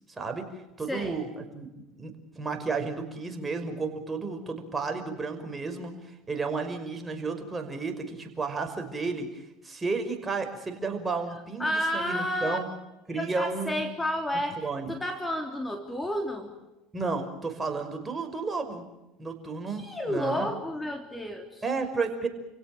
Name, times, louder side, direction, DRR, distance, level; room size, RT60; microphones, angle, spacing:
voice 1, 0.2-0.5 0.8-12.6 13.1-13.8 14.6-15.0 16.9-18.8 19.2-20.5 21.6-22.3, right 4 dB, 20° right, 5 dB, 5.7 m, -32 dB
voice 2, 11.6-12.6 13.1-16.5 19.8-21.6, left 1 dB, 10° left, 4 dB, 3.3 m, -31 dB
30.0 x 17.0 x 9.3 m, 0.97 s
hypercardioid pair, 80°, 0 cm